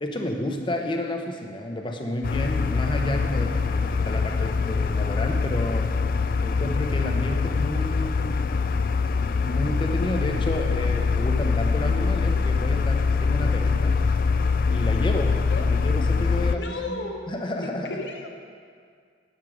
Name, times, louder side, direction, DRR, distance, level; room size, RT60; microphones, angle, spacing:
voice 1, 0.0-5.9 6.4-8.4 9.4-14.0 14.7-17.9, left 1 dB, 25° left, 3 dB, 0.9 m, -31 dB
sound 1, 2.2-16.6, left 4 dB, 50° left, 0.3 m, -24 dB
voice 2, 15.2-15.7 16.5-17.2 17.6-18.3, left 2 dB, 75° left, 3 dB, 1.1 m, -35 dB
9.2 x 8.2 x 5.1 m, 2.1 s
head